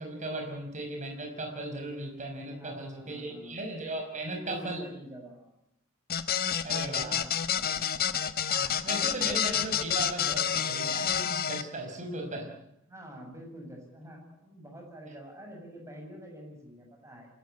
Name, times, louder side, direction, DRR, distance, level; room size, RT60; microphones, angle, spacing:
voice 1, 0.0-4.8 6.6-7.2 8.5-12.5, right 1 dB, 35° right, 2 dB, 5.3 m, -37 dB
voice 2, 2.5-3.7 4.1-5.6 6.7-7.8 12.9-17.3, equal, 15° right, 1 dB, 7.4 m, -47 dB
sound 1, 6.1-11.6, left 8 dB, 50° left, 1.2 m, -29 dB
26.5 x 13.5 x 9.8 m, 0.79 s
head